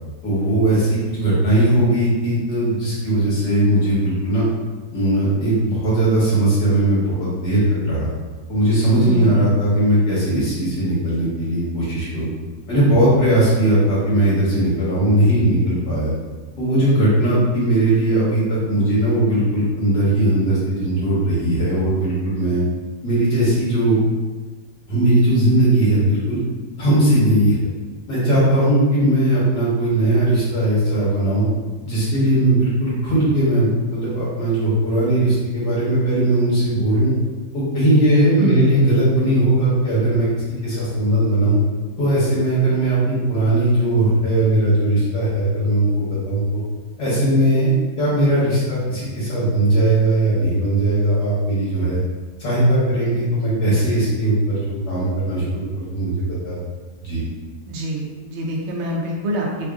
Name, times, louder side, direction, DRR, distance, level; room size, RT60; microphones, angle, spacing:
voice 1, 0.2-4.4 4.9-8.1 8.5-12.3 12.7-16.1 16.6-22.6 23.0-24.0 24.9-26.4 26.8-27.7 28.1-31.5 31.8-37.1 37.5-40.3 40.6-41.6 42.0-46.4 47.0-47.7 48.0-52.0 52.4-54.6 54.9-56.6 57.0-57.2, right 1 dB, 70° left, -9 dB, 1.8 m, -18 dB
voice 2, 9.0-9.5 38.4-39.0 57.7-59.7, right 1 dB, 65° right, -3 dB, 0.6 m, -26 dB
3.4 x 2.5 x 3.5 m, 1.3 s
omnidirectional pair, 1.8 m